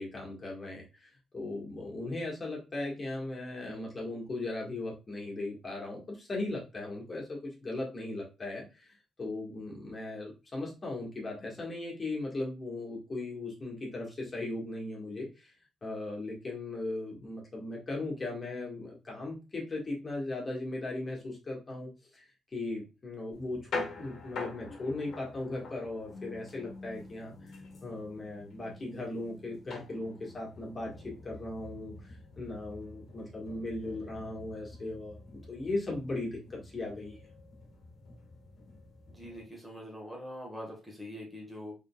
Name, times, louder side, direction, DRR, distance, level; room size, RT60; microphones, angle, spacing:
voice 1, 0.0-15.5 15.8-22.2 22.5-27.3 27.8-37.2, left 2 dB, 30° left, -3 dB, 1.6 m, -38 dB
sound 1, 23.3-39.5, left 3 dB, 65° left, 1.2 m, -46 dB
voice 2, 39.1-41.7, equal, 5° right, -2 dB, 1.4 m, -43 dB
3.8 x 3.5 x 2.3 m, 0.28 s
cardioid pair, 90°, 0 cm